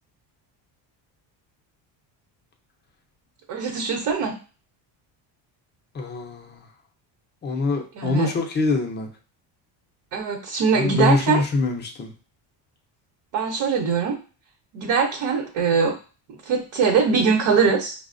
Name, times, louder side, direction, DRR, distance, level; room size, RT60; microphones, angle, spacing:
voice 1, 3.5-4.4 8.0-8.3 10.1-11.4 13.3-14.2 14.7-15.9 16.5-17.9, right 5 dB, 70° right, 0 dB, 0.8 m, -22 dB
voice 2, 5.9-6.6 7.4-9.1 10.7-12.1, left 3 dB, 25° left, 3 dB, 0.4 m, -24 dB
5.5 x 2.0 x 2.4 m, 0.36 s
cardioid pair, 150°, 47 cm